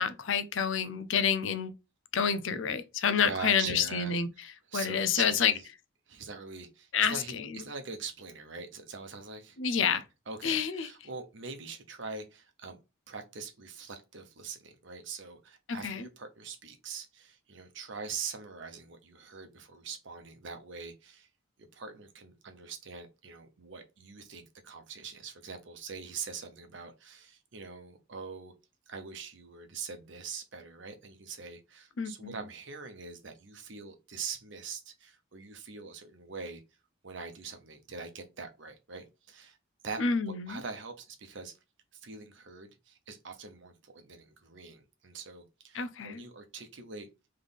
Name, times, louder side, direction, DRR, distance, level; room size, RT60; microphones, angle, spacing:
voice 1, 0.0-1.7 2.1-4.3 4.7-5.5 6.9-7.6 9.6-10.0 10.4-10.9 15.7-16.1 32.0-32.4 40.0-40.6 45.7-46.2, left 6 dB, 70° left, 0.6 m, -28 dB
voice 2, 3.2-4.2 4.7-5.7 6.1-9.6 10.3-12.8 13.1-21.3 21.7-28.5 28.9-36.6 37.0-39.6 39.8-41.5 42.0-47.1, right 5 dB, 65° right, 0.8 m, -43 dB
3.6 x 3.2 x 4.0 m
head